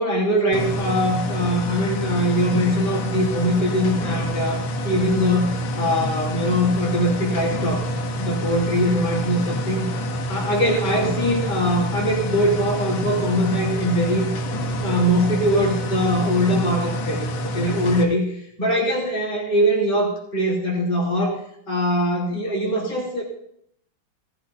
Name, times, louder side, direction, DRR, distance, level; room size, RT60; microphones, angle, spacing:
voice 1, 0.0-7.9 8.2-9.9 10.3-14.3 14.8-17.3 17.5-18.3 18.6-21.4 21.7-23.2, equal, 25° left, -3 dB, 3.5 m, -22 dB
sound 1, 0.5-18.0, equal, 80° left, 1.9 m, -27 dB
18.5 x 13.5 x 2.6 m, 0.70 s
omnidirectional pair, 2.2 m